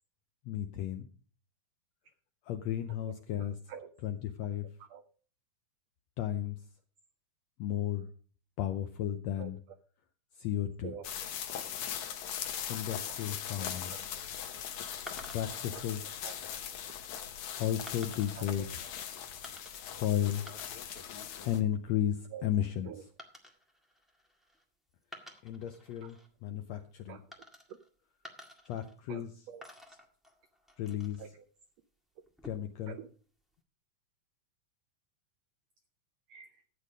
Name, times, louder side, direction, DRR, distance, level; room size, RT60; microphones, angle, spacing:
voice 1, 0.5-1.1 2.5-3.5 4.0-4.7 6.2-6.6 7.6-8.1 8.6-9.6 10.4-10.9 12.7-13.9 15.3-16.0 17.6-18.7 19.8-20.4 21.4-22.9 25.4-27.2 28.7-29.3 30.8-31.2 32.4-33.0, left 11 dB, 80° left, 8 dB, 1.5 m, -34 dB
voice 2, 3.4-3.9 4.9-5.0 9.4-9.5 10.8-11.1 13.1-13.2 13.6-14.0 15.7-15.8 16.2-16.4 18.3-18.4 22.3-22.5 22.8-23.0 26.0-26.1 27.1-27.2 27.7-27.8 29.1-29.6 31.2-31.4 32.9-33.1 36.3-36.6, right 9 dB, 85° right, 10 dB, 1.4 m, -46 dB
sound 1, 11.0-21.6, left 9 dB, 65° left, 2.3 m, -40 dB
sound 2, 15.1-15.7 16.4-16.7 17.9-18.5 19.4-20.0 20.3-21.0 21.3-21.7 23.2-24.6 25.0-26.3 27.3-27.9 28.2-29.3 29.6-31.3 32.2-32.8, equal, ahead, 0.4 m, -52 dB
13.0 x 8.4 x 5.1 m, 0.41 s
omnidirectional pair, 3.8 m